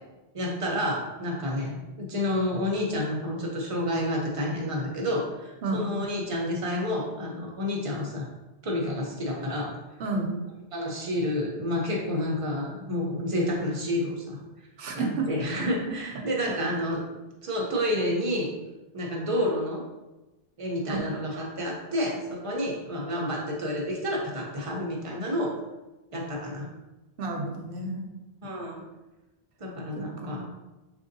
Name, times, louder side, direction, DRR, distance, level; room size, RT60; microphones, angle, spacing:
voice 1, 0.3-8.3 8.6-9.7 10.7-14.4 14.9-17.0 17.4-18.5 18.9-19.9 20.6-25.5 26.1-26.7 28.4-28.8 29.6-30.4, left 1 dB, 35° right, -2 dB, 0.7 m, -29 dB
voice 2, 10.0-10.3 14.8-15.3 20.9-21.0 27.2-28.0 30.0-30.4, right 3 dB, 65° right, 2 dB, 0.8 m, -31 dB
4.3 x 2.6 x 2.6 m, 1.1 s
omnidirectional pair, 1.0 m